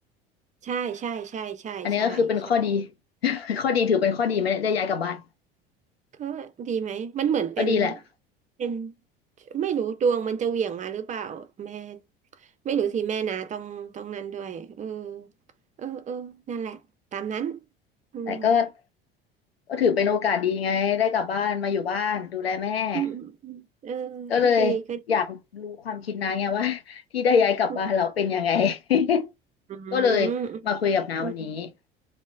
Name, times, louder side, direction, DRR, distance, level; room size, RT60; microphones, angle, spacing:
voice 1, 0.6-2.3 6.2-8.0 8.6-8.9 9.5-12.0 12.6-15.3 15.8-16.8 17.1-17.6 18.1-18.6 22.9-25.0 27.7-27.8 29.7-30.8 31.2-31.5, right 7 dB, 25° right, 0.5 m, -30 dB
voice 2, 1.8-2.9 3.2-5.2 7.6-7.9 18.3-18.7 19.7-23.0 24.3-24.8 25.1-29.3 29.9-30.3 30.7-31.7, left 6 dB, 85° left, 0.6 m, -24 dB
3.1 x 2.1 x 3.2 m
figure-of-eight pair, 65°, 30 cm